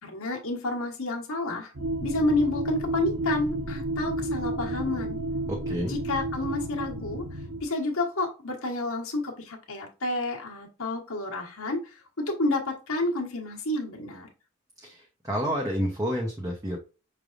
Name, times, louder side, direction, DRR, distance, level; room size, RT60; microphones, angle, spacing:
voice 1, 0.0-1.7 2.0-5.2 5.8-14.3, left 2 dB, 75° left, 0 dB, 1.2 m, -30 dB
sound 1, 1.8-7.6, right 1 dB, 90° right, 0.9 m, -31 dB
voice 2, 5.5-6.0 14.8-16.8, equal, 15° right, -1 dB, 0.7 m, -29 dB
6.0 x 3.4 x 2.5 m, 0.33 s
head